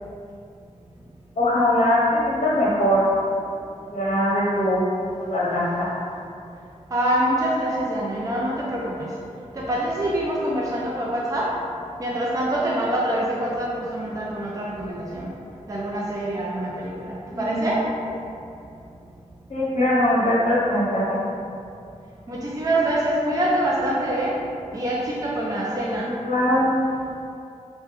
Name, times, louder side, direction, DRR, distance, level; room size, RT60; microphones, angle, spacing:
voice 1, 1.4-3.0 3.9-4.8 5.2-5.9 17.3-17.6 19.5-21.2 26.0-26.7, left 1 dB, 65° left, -7 dB, 0.7 m, -21 dB
voice 2, 6.9-9.1 9.5-11.5 12.0-15.3 15.7-17.8 22.3-24.3 24.7-26.1, right 1 dB, 30° right, -5 dB, 0.4 m, -25 dB
3.1 x 2.1 x 3.2 m, 2.6 s
wide cardioid pair, 75°, 13 cm